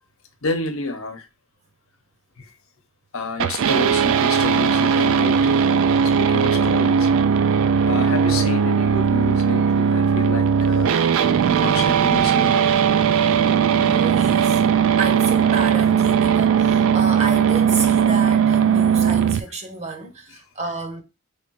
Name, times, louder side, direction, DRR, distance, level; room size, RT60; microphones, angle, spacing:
voice 1, 0.4-1.2 2.4-2.5 3.1-5.7 6.2-7.1 7.9-11.0 11.4-12.8 14.9-15.0, left 3 dB, 85° left, 0.8 m, -29 dB
sound 1, 3.4-19.4, right 7 dB, 70° right, 0.4 m, -18 dB
voice 2, 13.8-14.6 15.0-21.0, right 4 dB, 35° right, 0.9 m, -30 dB
3.4 x 2.6 x 4.5 m
head